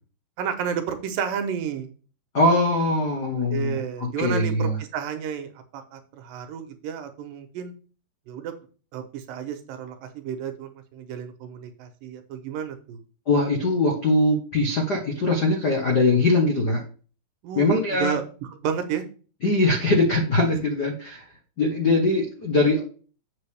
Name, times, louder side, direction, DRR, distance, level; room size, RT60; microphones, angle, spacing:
voice 1, 0.4-1.9 3.5-7.7 8.3-8.5 8.9-13.0 17.4-17.7 18.0-18.2 18.6-19.0, right 8 dB, 75° right, 7 dB, 2.5 m, -31 dB
voice 2, 2.3-4.8 13.3-16.8 17.5-18.2 19.4-21.2 21.6-22.9, left 2 dB, 70° left, 1 dB, 0.9 m, -22 dB
7.6 x 6.8 x 3.4 m, 0.38 s
omnidirectional pair, 4.2 m